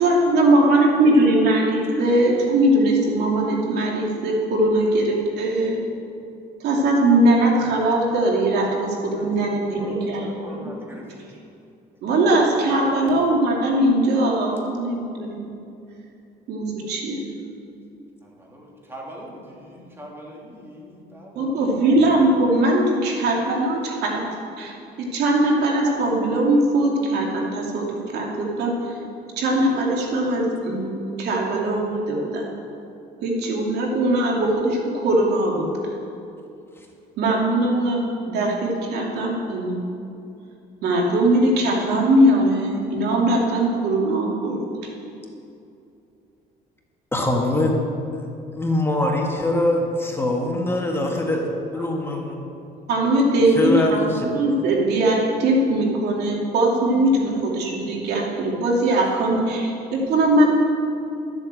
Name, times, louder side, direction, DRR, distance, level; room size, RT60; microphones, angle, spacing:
voice 1, 0.0-5.8 6.6-10.7 12.0-15.4 16.5-17.2 21.3-24.2 24.6-27.9 28.1-29.0 29.4-32.4 33.2-35.9 37.2-39.8 40.8-44.6 52.9-60.4, right 1 dB, 75° right, -2 dB, 2.7 m, -20 dB
voice 2, 9.0-11.0 18.2-21.8 51.8-51.9, equal, 15° right, -3 dB, 3.1 m, -41 dB
voice 3, 47.1-47.8 48.5-52.4 53.5-54.3, left 1 dB, 15° left, 0 dB, 1.8 m, -23 dB
13.0 x 7.9 x 7.6 m, 2.7 s
cardioid pair, 110°, 17 cm